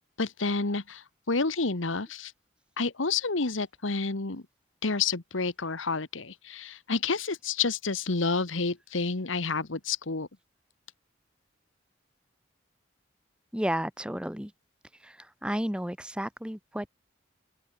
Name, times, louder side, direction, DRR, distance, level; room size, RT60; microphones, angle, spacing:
voice 1, 0.2-2.3 2.8-4.4 4.8-10.3, left 4 dB, 85° left, 1.5 m, -29 dB
voice 2, 13.5-14.5 15.0-16.9, equal, 5° right, 1.4 m, -32 dB
open air
head